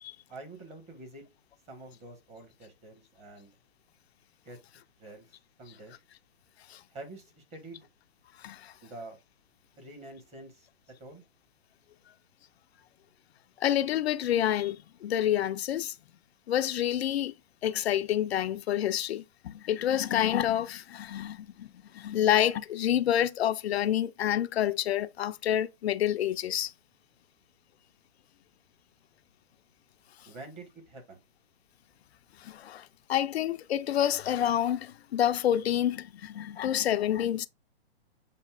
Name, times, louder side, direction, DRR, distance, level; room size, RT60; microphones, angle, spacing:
voice 1, 0.3-1.2 1.7-3.5 4.4-4.6 5.0-5.3 5.6-6.0 6.9-7.9 8.8-9.2 9.8-11.2 30.2-31.2, right 2 dB, 20° right, 1.3 m, -47 dB
voice 2, 8.4-8.7 13.6-15.9 16.5-17.3 17.6-21.7 21.9-26.7 32.4-37.5, left 11 dB, 75° left, 0.5 m, -28 dB
7.4 x 2.8 x 2.4 m
hypercardioid pair, 135°, 32 cm